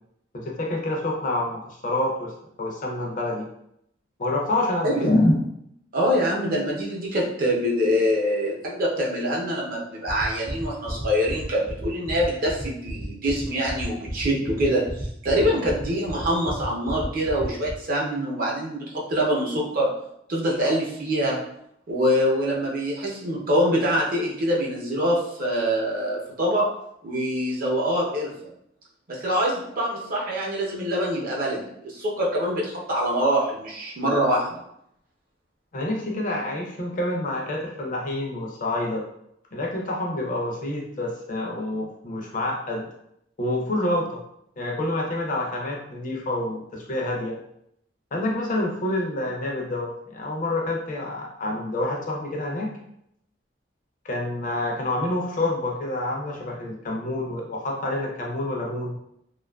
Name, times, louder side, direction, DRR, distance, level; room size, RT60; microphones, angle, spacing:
voice 1, 0.3-2.3 2.6-3.5 4.2-5.3 35.7-39.0 39.5-42.9 43.4-44.2 44.6-47.4 48.1-52.7 54.0-59.0, left 1 dB, 45° left, -1 dB, 0.5 m, -27 dB
voice 2, 4.8-5.4 5.9-19.9 20.3-21.4 21.9-26.7 27.0-28.3 29.1-34.5, equal, 50° right, -3 dB, 0.6 m, -24 dB
sound 1, 10.1-17.7, right 1 dB, 10° right, 0.3 m, -35 dB
2.6 x 2.3 x 2.2 m, 0.75 s
head